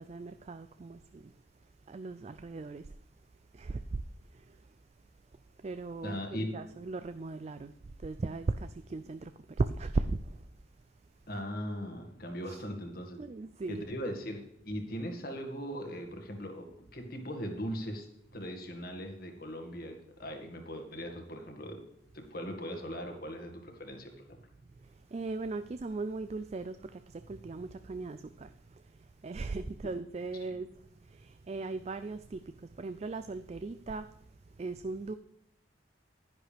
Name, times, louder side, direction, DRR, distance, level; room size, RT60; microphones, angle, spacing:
voice 1, 0.0-1.3 1.9-2.9 3.5-4.0 4.3-4.6 5.6-7.7 8.0-9.3 9.6-10.4 12.4-12.6 13.2-13.8 25.1-28.5 29.2-30.7 31.1-34.1 34.6-35.1, right 3 dB, 35° right, 0.3 m, -37 dB
voice 2, 6.0-6.6 11.3-13.2 13.7-21.8 22.1-24.4 29.8-29.9 30.5-30.6, equal, 50° left, 1.9 m, -39 dB
11.0 x 10.5 x 3.4 m
head